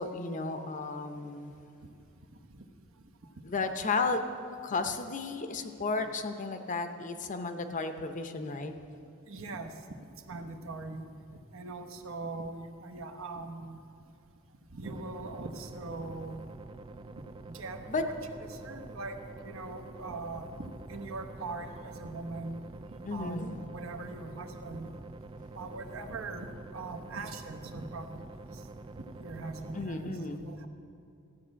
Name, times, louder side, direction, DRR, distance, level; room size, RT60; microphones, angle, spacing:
voice 1, 0.0-1.5 3.4-4.3 4.6-8.7 17.9-18.0 23.0-23.5 29.7-30.4, left 3 dB, 35° left, 7 dB, 0.7 m, -33 dB
voice 2, 9.3-10.0 10.3-13.8 14.7-16.4 17.5-17.8 18.5-19.2 19.4-22.6 23.1-25.0 25.6-26.5 26.7-28.6 28.9-30.7, right 3 dB, 65° right, 5 dB, 0.9 m, -41 dB
sound 1, 14.8-29.9, right 2 dB, 25° right, 0.4 m, -47 dB
13.5 x 8.7 x 6.3 m, 2.6 s
head